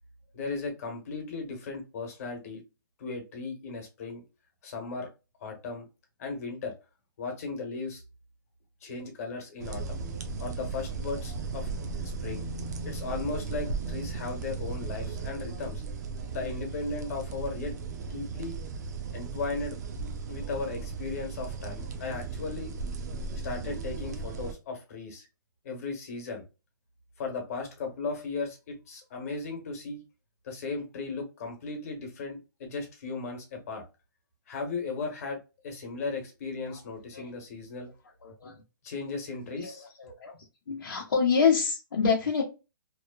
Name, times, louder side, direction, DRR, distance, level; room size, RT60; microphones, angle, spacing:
voice 1, 0.3-2.6 3.0-4.2 4.6-5.1 5.4-5.9 6.2-6.7 7.2-8.0 8.8-10.0 10.4-11.7 12.2-12.5 12.8-15.8 16.3-17.8 18.1-18.6 19.1-19.8 20.3-22.7 23.4-25.3 25.6-26.4 27.2-30.0 30.4-33.8 34.5-37.9 38.8-39.9, left 4 dB, 45° left, 2 dB, 1.1 m, -36 dB
sound 1, 9.6-24.5, right 4 dB, 50° right, 0.6 m, -36 dB
voice 2, 38.2-38.6 39.6-39.7 40.0-40.3 40.7-42.4, left 6 dB, 90° left, -3 dB, 0.8 m, -26 dB
3.0 x 2.1 x 2.2 m, 0.28 s
hypercardioid pair, 160°, 11 cm